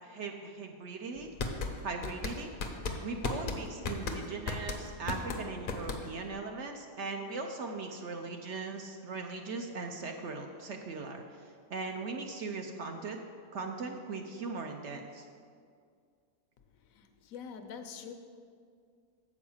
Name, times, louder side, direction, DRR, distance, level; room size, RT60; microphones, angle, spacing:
voice 1, 0.0-1.3 1.8-2.5 3.0-13.2 13.5-15.3, right 4 dB, 65° right, 4 dB, 0.8 m, -39 dB
sound 1, 1.2-6.3, left 4 dB, 50° left, 0.6 m, -36 dB
voice 2, 16.8-18.1, left 7 dB, 75° left, 7 dB, 1.0 m, -45 dB
7.1 x 4.7 x 7.0 m, 2.2 s
omnidirectional pair, 1.5 m